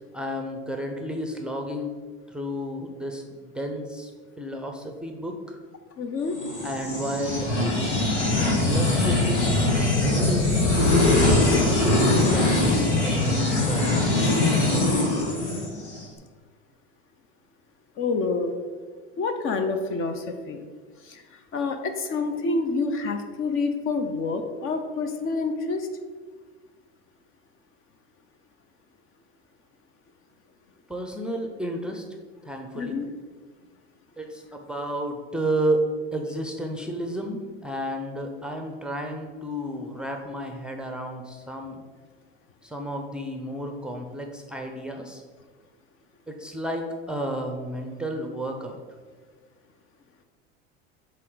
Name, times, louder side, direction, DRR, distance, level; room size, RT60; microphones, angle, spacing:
voice 1, 0.1-2.0 2.3-4.1 4.4-5.6 6.6-8.0 8.4-10.7 11.2-11.8 12.0-14.1 30.9-32.0 32.5-33.0 34.2-35.9 36.1-41.8 42.6-45.2 46.3-48.8, equal, 5° right, 3 dB, 0.6 m, -32 dB
voice 2, 6.0-6.4 18.0-18.5 19.2-20.6 21.1-21.2 21.5-25.9 32.7-33.1, left 3 dB, 40° left, 7 dB, 0.7 m, -27 dB
sound 1, 6.3-16.0, left 2 dB, 85° left, 1.8 m, -22 dB
7.4 x 3.6 x 3.9 m, 1.5 s
hypercardioid pair, 95°, 33 cm